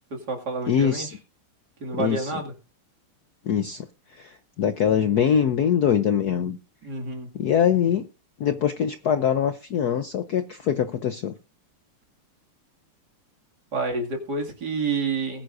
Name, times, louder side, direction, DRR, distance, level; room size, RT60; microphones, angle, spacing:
voice 1, 0.1-1.1 1.8-2.5 6.8-7.3 13.7-15.4, right 4 dB, 50° right, 1 dB, 2.8 m, -29 dB
voice 2, 0.7-1.1 1.9-2.3 3.4-6.6 7.3-8.1 8.4-11.3, left 8 dB, 65° left, 9 dB, 1.0 m, -23 dB
20.0 x 9.6 x 2.6 m, 0.31 s
omnidirectional pair, 2.4 m